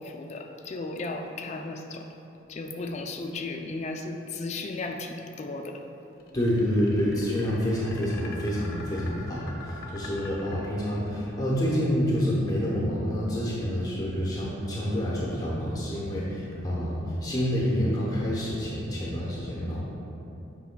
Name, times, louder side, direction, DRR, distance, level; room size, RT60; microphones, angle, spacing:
voice 1, 0.0-2.1 2.5-5.8, left 2 dB, 35° left, 3 dB, 0.3 m, -35 dB
sound 1, 6.2-11.2, left 3 dB, 50° left, 0.7 m, -44 dB
voice 2, 6.3-19.8, equal, 20° left, -6 dB, 0.8 m, -28 dB
8.0 x 5.4 x 2.2 m, 2.9 s
head